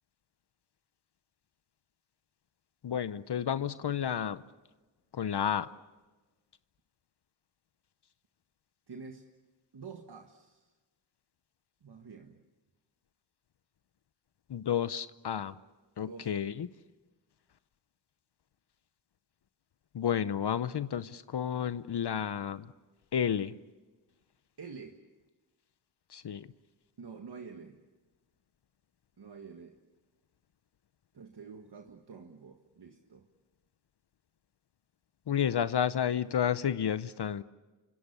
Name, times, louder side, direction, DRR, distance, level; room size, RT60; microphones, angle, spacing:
voice 1, 2.8-4.4 5.1-5.7 14.5-15.5 16.0-16.7 19.9-22.7 23.1-23.6 26.1-26.5 35.3-37.4, left 8 dB, 70° left, 14 dB, 0.8 m, -31 dB
voice 2, 8.9-9.3 9.7-10.7 11.8-12.4 16.1-16.4 24.6-25.0 27.0-27.8 29.2-29.8 31.1-33.3, right 5 dB, 65° right, 4 dB, 1.7 m, -48 dB
29.0 x 25.5 x 6.8 m, 1.2 s
wide cardioid pair, 65°, 42 cm